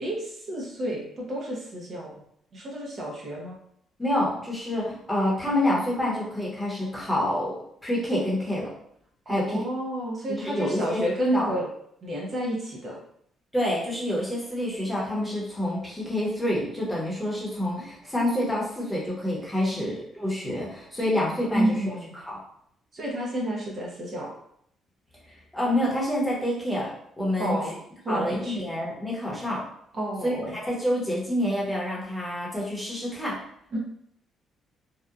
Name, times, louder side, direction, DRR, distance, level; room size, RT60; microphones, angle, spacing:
voice 1, 0.0-2.2 2.5-3.6 9.3-11.7 12.0-13.0 19.7-19.9 21.5-22.1 22.9-24.3 27.4-27.8 28.0-28.6 29.9-30.6 33.7-33.8, right 1 dB, 40° right, -3 dB, 0.6 m, -30 dB
voice 2, 4.0-8.7 9.3-9.6 10.3-11.0 11.3-11.5 13.5-22.4 25.5-27.7 28.1-29.6 30.2-33.4, left 1 dB, 5° left, -5 dB, 0.8 m, -28 dB
2.7 x 2.2 x 2.4 m, 0.70 s
cardioid pair, 120°, 0 cm